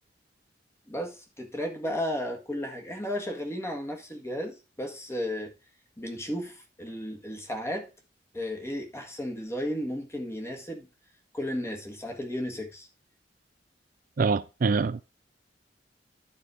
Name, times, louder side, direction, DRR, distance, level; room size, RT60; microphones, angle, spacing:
voice 1, 0.9-5.5 6.0-7.9 8.3-10.9 11.3-12.9, equal, 15° left, 1.8 m, -34 dB
voice 2, 14.2-15.0, right 4 dB, 50° right, 0.4 m, -25 dB
11.0 x 4.3 x 4.8 m
head